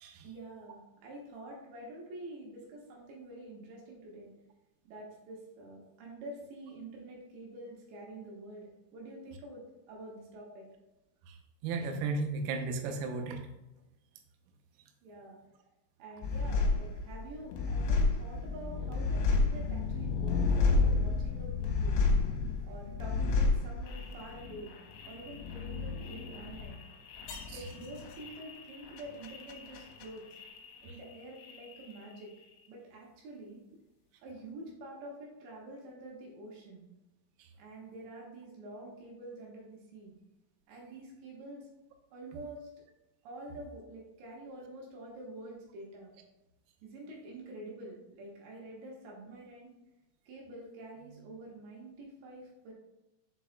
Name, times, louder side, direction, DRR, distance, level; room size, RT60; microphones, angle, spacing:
voice 1, 0.2-4.3 4.8-10.7 15.0-15.4 16.0-22.0 22.6-24.7 25.0-26.8 27.5-30.2 30.8-32.3 32.7-33.6 34.2-36.8 37.6-40.1 40.7-41.7 42.1-42.7 43.2-46.1 46.8-49.7 50.3-52.7, right 1 dB, 65° right, -3 dB, 3.3 m, -47 dB
voice 2, 11.6-13.4 27.5-27.7, right 3 dB, 90° right, 4 dB, 3.5 m, -34 dB
sound 1, 16.2-31.1 31.4-32.2, left 3 dB, 80° left, 3.3 m, -31 dB
7.6 x 6.5 x 2.3 m, 0.97 s
omnidirectional pair, 6.0 m